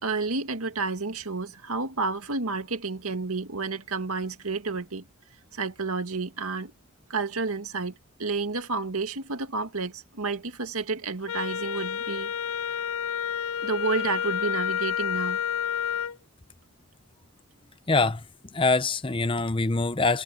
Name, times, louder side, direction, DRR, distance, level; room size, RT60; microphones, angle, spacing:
voice 1, 0.0-5.1 5.5-6.7 7.1-12.3 13.6-15.4, right 4 dB, 85° right, 2.1 m, -30 dB
Wind instrument woodwind instrument, 11.3-16.2, left 8 dB, 75° left, 0.4 m, -29 dB
voice 2, 17.9-18.2 18.5-20.2, left 3 dB, 25° left, 0.7 m, -24 dB
head